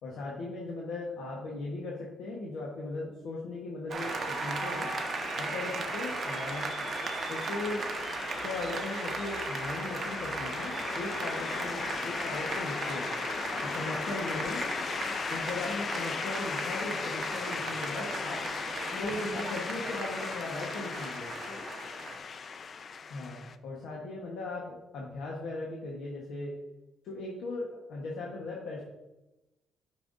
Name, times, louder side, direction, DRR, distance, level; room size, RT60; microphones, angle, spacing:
voice 1, 0.0-4.9 5.4-6.7 7.3-7.9 8.4-13.1 13.6-14.6 15.3-18.4 18.9-21.3 23.1-26.5 27.0-28.8, left 2 dB, 80° left, -3 dB, 1.2 m, -38 dB
Applause, 3.9-22.2, right 4 dB, 50° right, 0.9 m, -37 dB
sound 1, 4.0-23.6, left 5 dB, 50° left, 0.4 m, -37 dB
8.9 x 5.6 x 2.6 m, 1.0 s
cardioid pair, 90°, 0 cm